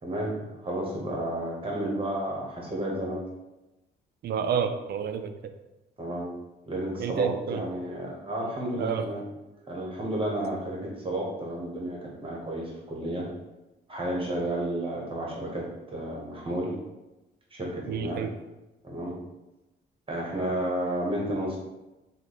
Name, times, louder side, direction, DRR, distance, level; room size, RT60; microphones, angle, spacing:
voice 1, 0.0-3.2 6.0-6.3 6.7-9.3 9.7-13.3 13.9-16.7 17.5-18.2 18.8-19.2 20.1-21.6, right 1 dB, 25° right, -2 dB, 1.1 m, -32 dB
voice 2, 4.2-5.5 7.0-7.6 8.8-9.0 17.9-18.3, right 7 dB, 55° right, 8 dB, 0.4 m, -29 dB
3.0 x 2.2 x 4.0 m, 0.99 s
cardioid pair, 90°, 20 cm